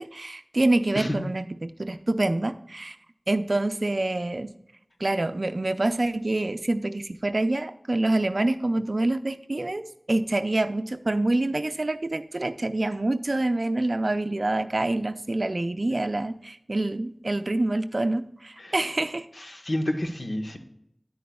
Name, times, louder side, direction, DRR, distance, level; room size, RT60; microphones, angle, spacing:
voice 1, 0.0-3.0 3.3-4.5 5.0-9.8 10.1-19.3, right 2 dB, 60° right, 10 dB, 0.5 m, -26 dB
voice 2, 19.4-20.6, left 1 dB, 65° left, 5 dB, 1.1 m, -29 dB
10.0 x 9.2 x 2.3 m, 0.76 s
wide cardioid pair, 45°, 0 cm